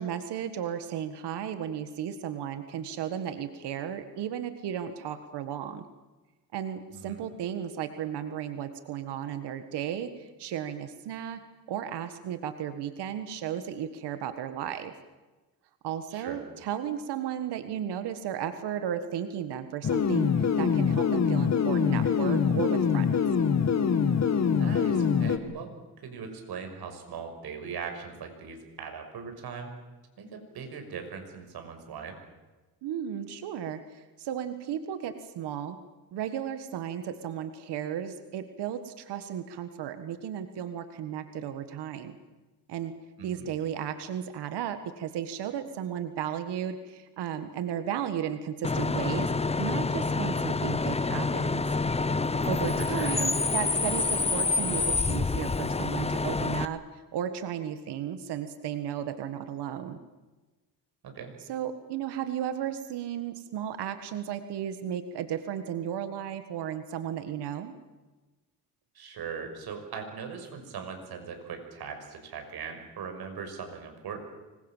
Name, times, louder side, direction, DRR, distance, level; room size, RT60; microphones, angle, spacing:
voice 1, 0.0-5.8 6.5-11.4 11.7-14.9 15.8-23.2 32.8-35.8 36.1-42.1 42.7-42.9 43.2-51.6 52.4-56.8 57.1-60.0 61.5-67.7, right 9 dB, 85° right, 9 dB, 1.7 m, -34 dB
voice 2, 6.9-7.2 16.1-16.4 24.5-25.7 26.0-29.7 30.2-32.2 43.2-43.5 52.8-53.3 61.0-61.3 68.9-74.2, right 6 dB, 70° right, 5 dB, 5.9 m, -40 dB
sound 1, 19.8-25.4, left 6 dB, 40° left, 1.9 m, -24 dB
Bus / Idling / Screech, 48.6-56.7, left 3 dB, 15° left, 0.7 m, -27 dB
26.0 x 22.0 x 7.4 m, 1.2 s
cardioid pair, 110°, 39 cm